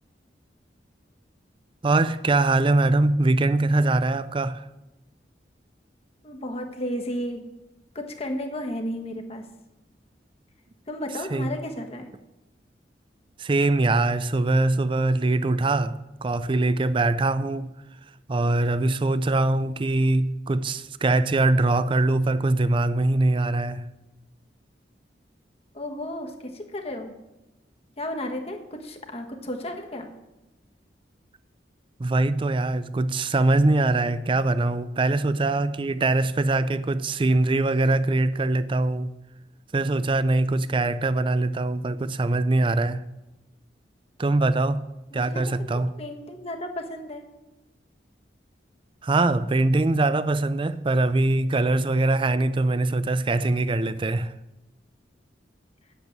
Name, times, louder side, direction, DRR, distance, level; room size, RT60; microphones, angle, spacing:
voice 1, 1.8-4.7 11.3-11.5 13.4-17.7 18.3-23.9 32.0-39.1 39.7-43.0 44.2-44.8 45.1-45.9 49.0-54.3, right 2 dB, 30° right, 0.4 m, -22 dB
voice 2, 6.2-7.5 7.9-9.5 10.9-12.1 25.7-27.2 28.0-30.1 45.1-47.3, left 1 dB, 35° left, 1.4 m, -33 dB
8.1 x 7.8 x 8.9 m
head